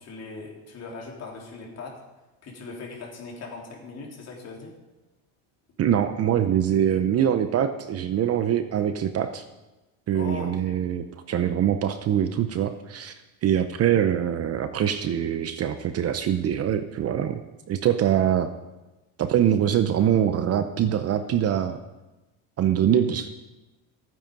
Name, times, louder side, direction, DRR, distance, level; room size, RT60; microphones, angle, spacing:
voice 1, 0.0-1.9 2.4-4.7 10.1-10.8, left 4 dB, 40° left, -1 dB, 3.5 m, -39 dB
voice 2, 5.8-9.4 10.1-13.2 13.4-18.5 19.2-21.8 22.6-23.3, right 10 dB, 35° right, 9 dB, 0.7 m, -23 dB
15.0 x 9.3 x 5.3 m, 1.1 s
cardioid pair, 135°, 41 cm